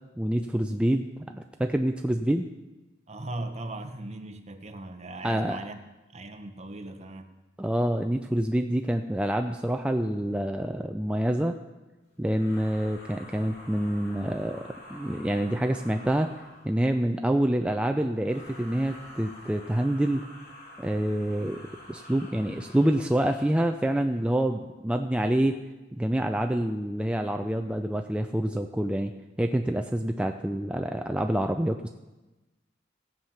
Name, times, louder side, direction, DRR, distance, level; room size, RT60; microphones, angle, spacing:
voice 1, 0.2-1.1 1.3-2.5 5.2-5.6 7.6-11.6 12.2-16.3 16.6-20.2 20.8-21.6 21.9-25.6 25.9-29.1 29.4-31.9, right 1 dB, 5° right, 0.4 m, -27 dB
voice 2, 3.1-5.8 6.1-7.3, right 2 dB, 35° right, 1.0 m, -38 dB
sound 1, 12.3-16.8 18.2-23.7, left 1 dB, 60° left, 2.9 m, -48 dB
16.0 x 7.5 x 5.7 m
head